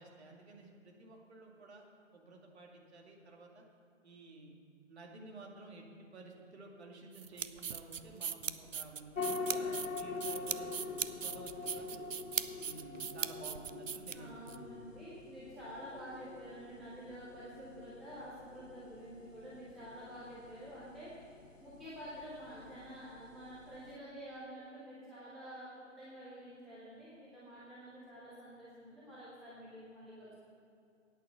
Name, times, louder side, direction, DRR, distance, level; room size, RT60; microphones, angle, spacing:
voice 1, 0.0-1.8 2.1-3.6 4.0-4.5 4.9-12.1 12.6-14.8, right 2 dB, 55° right, 0 dB, 2.4 m, -53 dB
sound 1, 7.1-14.6, right 7 dB, 80° right, 0.6 m, -40 dB
sound 2, 9.2-24.0, left 4 dB, 85° left, 0.9 m, -45 dB
voice 2, 14.1-21.1 21.6-30.3, equal, ahead, -11 dB, 0.3 m, -49 dB
9.1 x 9.0 x 7.5 m, 2.5 s
figure-of-eight pair, 135°, 38 cm